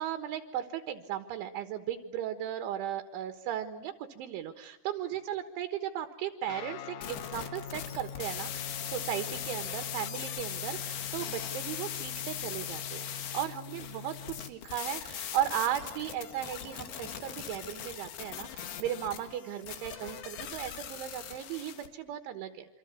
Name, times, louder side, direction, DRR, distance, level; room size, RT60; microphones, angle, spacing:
voice 1, 0.0-8.5 8.8-13.1 13.3-22.7, right 11 dB, 75° right, 7 dB, 3.6 m, -36 dB
Guitar, 6.5-14.5, left 7 dB, 85° left, 3.9 m, -44 dB
sound 1, 7.0-21.9, left 9 dB, 60° left, 3.2 m, -40 dB
27.5 x 26.0 x 8.2 m, 0.91 s
omnidirectional pair, 5.8 m